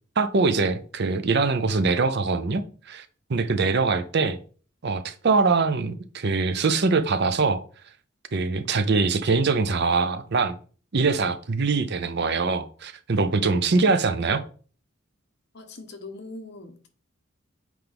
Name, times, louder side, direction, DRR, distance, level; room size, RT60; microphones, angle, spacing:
voice 1, 0.2-4.4 4.8-7.6 8.3-10.6 10.9-14.4, right 4 dB, 50° right, 0.6 m, -23 dB
voice 2, 15.5-16.9, left 2 dB, 55° left, 1.0 m, -41 dB
7.9 x 4.6 x 3.5 m
head